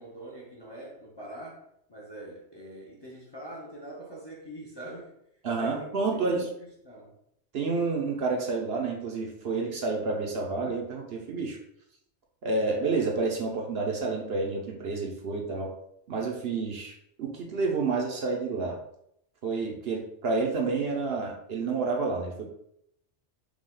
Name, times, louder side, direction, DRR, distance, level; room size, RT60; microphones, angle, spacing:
voice 1, 0.0-1.6 1.9-5.1 5.5-7.1, right 1 dB, 25° left, -3 dB, 0.7 m, -44 dB
voice 2, 5.4-6.5 7.5-11.6 12.4-15.7 16.1-18.8 19.4-22.5, right 3 dB, 60° right, 0 dB, 0.9 m, -29 dB
4.8 x 2.3 x 3.7 m, 0.74 s
omnidirectional pair, 1.2 m